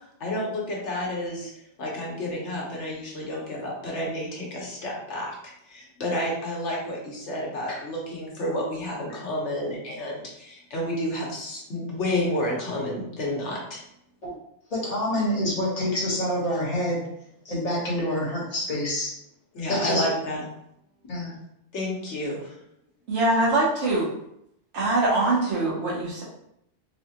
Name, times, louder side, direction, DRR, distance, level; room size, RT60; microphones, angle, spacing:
voice 1, 0.2-1.5 1.8-13.8 19.5-20.4 21.7-22.5, left 1 dB, 85° left, -3 dB, 1.3 m, -30 dB
voice 2, 14.7-17.0 17.4-19.1 19.7-20.0 21.1-21.4, left 1 dB, 35° left, -5 dB, 1.1 m, -27 dB
voice 3, 23.1-24.1 24.7-26.2, right 2 dB, 80° right, -5 dB, 1.4 m, -23 dB
4.1 x 2.3 x 2.8 m, 0.76 s
omnidirectional pair, 1.2 m